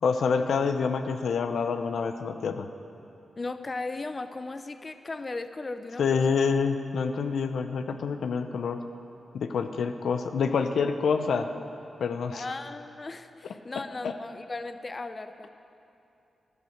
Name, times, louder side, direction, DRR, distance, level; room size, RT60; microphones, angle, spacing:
voice 1, 0.0-2.7 6.0-8.8 9.3-11.5 12.0-12.4 14.0-14.1, left 5 dB, 80° left, 8 dB, 0.6 m, -27 dB
voice 2, 3.4-6.3 12.3-15.5, left 3 dB, 40° left, 10 dB, 0.6 m, -37 dB
12.0 x 10.5 x 6.5 m, 2.8 s
cardioid pair, 55°, 0 cm